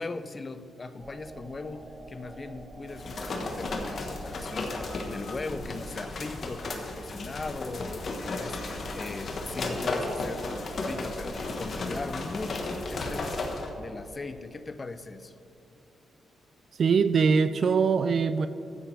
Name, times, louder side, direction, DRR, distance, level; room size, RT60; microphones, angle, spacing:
voice 1, 0.0-13.4 13.8-15.3, left 3 dB, 30° left, 12 dB, 0.5 m, -39 dB
sound 1, 1.0-7.6, right 1 dB, 35° right, 1.7 m, -48 dB
sound 2, 2.9-13.7, left 2 dB, 55° left, 1.3 m, -34 dB
voice 2, 16.8-18.5, right 5 dB, 55° right, 12 dB, 0.3 m, -22 dB
13.0 x 8.9 x 3.4 m, 2.7 s
cardioid pair, 90°, 0 cm